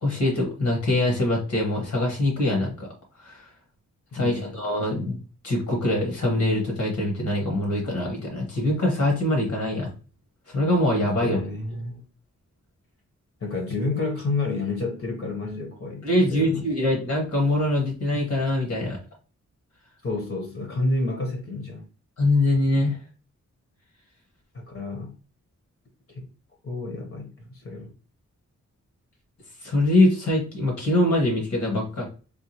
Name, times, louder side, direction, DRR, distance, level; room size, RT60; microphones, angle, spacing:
voice 1, 0.0-2.9 3.2-3.5 4.1-9.9 10.5-11.4 16.0-19.0 22.2-23.0 29.6-32.1, left 1 dB, 75° left, 1.5 m, -23 dB
voice 2, 4.1-4.5 11.2-12.0 13.4-16.0 16.3-16.7 20.0-21.9 24.5-25.2 26.1-26.3 26.6-27.9, left 2 dB, 45° left, 1.0 m, -30 dB
3.6 x 2.3 x 2.9 m
wide cardioid pair, 90°, 30 cm